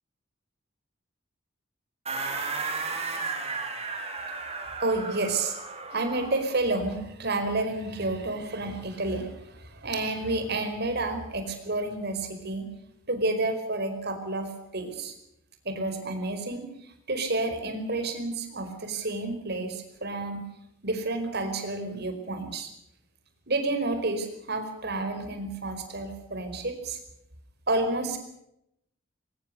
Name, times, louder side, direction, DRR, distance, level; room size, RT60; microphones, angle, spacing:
sound 1, 2.1-6.5, right 4 dB, 35° right, 4.7 m, -34 dB
voice 1, 4.8-5.6 5.9-12.7 13.1-15.1 15.6-16.6 17.1-20.4 20.8-22.7 23.5-27.0 27.7-28.2, right 2 dB, 55° right, 7 dB, 4.9 m, -30 dB
23.0 x 19.5 x 6.8 m, 0.79 s
head